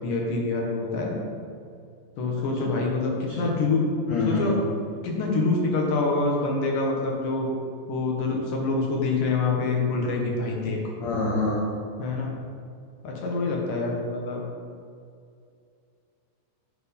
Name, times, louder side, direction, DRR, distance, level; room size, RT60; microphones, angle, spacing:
voice 1, 0.0-1.2 2.2-3.8 4.3-4.6 5.0-7.5 7.9-10.8 12.0-12.3 13.0-14.4, left 3 dB, 60° left, -1 dB, 2.4 m, -26 dB
voice 2, 4.1-4.5 11.0-11.6, left 2 dB, 85° left, -3 dB, 1.8 m, -26 dB
9.6 x 7.8 x 5.3 m, 2.4 s
omnidirectional pair, 5.5 m